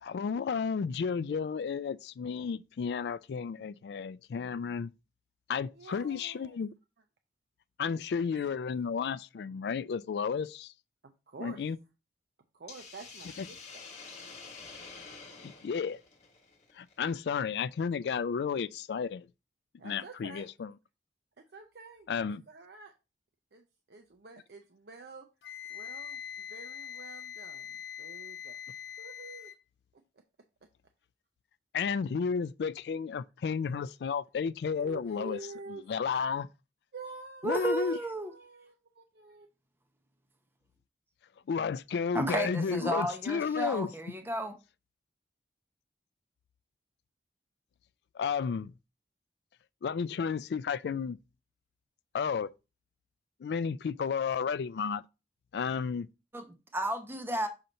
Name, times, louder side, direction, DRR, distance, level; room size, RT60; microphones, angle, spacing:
voice 1, 0.0-4.9 5.5-6.7 7.8-10.7 11.4-11.8 13.4-13.5 15.4-16.0 16.7-19.3 19.8-20.7 22.1-22.4 31.7-35.4 35.9-36.5 37.4-38.0 41.5-43.9 48.1-48.7 49.8-51.2 52.1-52.5 53.4-55.0 55.5-56.1, left 6 dB, 70° left, 0.3 m, -32 dB
voice 2, 5.7-6.6 8.3-8.4 11.0-11.7 12.5-13.6 19.8-20.5 21.5-22.9 23.5-25.3 25.7-28.6 29.0-29.5 34.7-35.8 36.9-39.5, right 4 dB, 65° right, 0.6 m, -48 dB
Hiss, 12.7-16.9, left 4 dB, 40° left, 1.3 m, -48 dB
Wind instrument woodwind instrument, 25.4-29.6, left 9 dB, 85° left, 0.8 m, -43 dB
voice 3, 37.4-38.3 42.1-44.6 56.3-57.5, right 1 dB, 10° right, 0.7 m, -33 dB
6.6 x 2.9 x 5.1 m
head